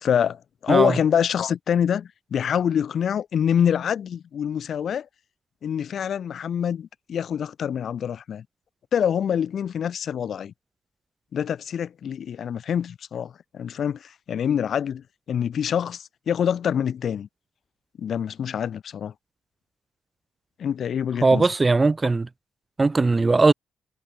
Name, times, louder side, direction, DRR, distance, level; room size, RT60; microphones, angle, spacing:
voice 1, 0.0-5.1 5.6-8.4 8.9-10.5 11.3-17.3 18.0-19.1 20.6-21.5, left 8 dB, 60° left, 0.6 m, -25 dB
voice 2, 0.7-1.0 21.2-22.3 22.8-23.5, right 3 dB, 25° right, 0.9 m, -19 dB
cardioid pair, 90°, 0 cm